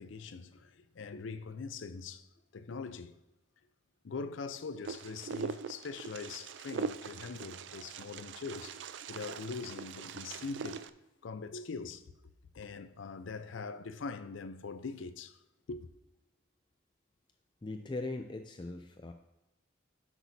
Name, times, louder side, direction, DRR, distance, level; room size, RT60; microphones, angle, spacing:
voice 1, 0.0-2.3 2.5-3.1 4.0-10.9 11.2-12.1 12.5-15.4 15.7-15.9, left 4 dB, 85° left, 0.5 m, -42 dB
Wind, 4.8-10.9, right 6 dB, 70° right, 0.4 m, -42 dB
voice 2, 17.6-19.1, left 2 dB, 25° left, 0.4 m, -40 dB
12.0 x 6.1 x 2.7 m
head